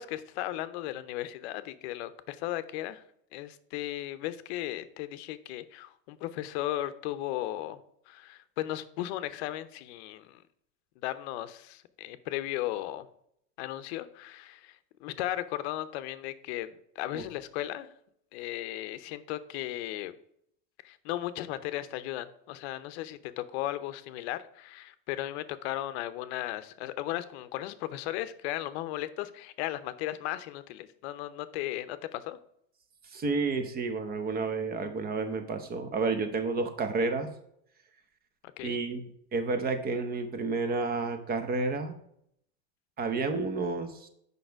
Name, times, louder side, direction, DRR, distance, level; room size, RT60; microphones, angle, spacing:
voice 1, 0.0-3.0 3.3-7.8 8.1-10.4 11.0-13.1 13.6-14.8 15.0-16.7 17.0-17.9 18.3-20.2 20.8-32.4 38.6-38.8, left 14 dB, 70° left, 13 dB, 0.7 m, -36 dB
voice 2, 33.1-37.3 38.6-39.0 39.3-41.9 43.0-44.1, right 3 dB, 25° right, 8 dB, 0.9 m, -30 dB
6.6 x 5.4 x 4.6 m, 0.72 s
supercardioid pair, 145°, 35 cm